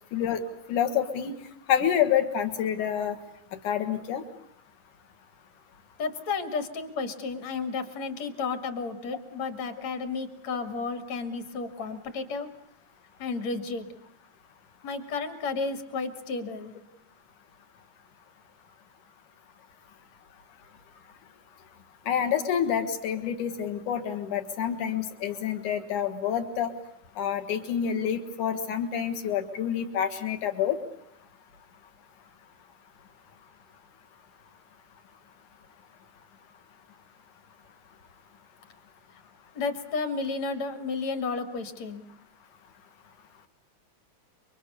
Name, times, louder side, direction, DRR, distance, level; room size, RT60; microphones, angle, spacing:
voice 1, 0.1-0.4 0.7-1.3 1.7-3.2 3.6-4.2 22.1-26.7 27.2-30.8, left 9 dB, 80° left, 8 dB, 3.2 m, -27 dB
voice 2, 6.0-12.5 13.2-13.9 14.8-16.7 39.5-42.0, left 4 dB, 65° left, 8 dB, 3.4 m, -32 dB
28.5 x 24.5 x 6.9 m, 0.72 s
omnidirectional pair, 3.4 m